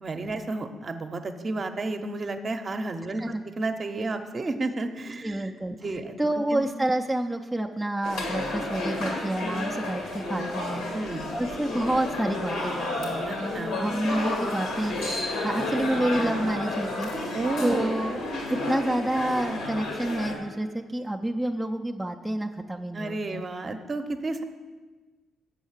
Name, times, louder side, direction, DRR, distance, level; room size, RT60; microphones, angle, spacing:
voice 1, 0.0-3.2 3.6-6.2 6.5-6.6 10.9-11.2 13.3-13.8 17.3-17.9 22.9-24.4, right 2 dB, 40° right, 7 dB, 0.7 m, -31 dB
voice 2, 5.2-5.8 6.2-10.8 11.3-14.9 15.4-18.2 18.5-23.4, right 1 dB, 5° right, 0 dB, 0.4 m, -29 dB
sound 1, 8.0-20.3, left 2 dB, 85° left, 1.9 m, -31 dB
7.2 x 5.6 x 7.2 m, 1.3 s
cardioid pair, 90°, 0 cm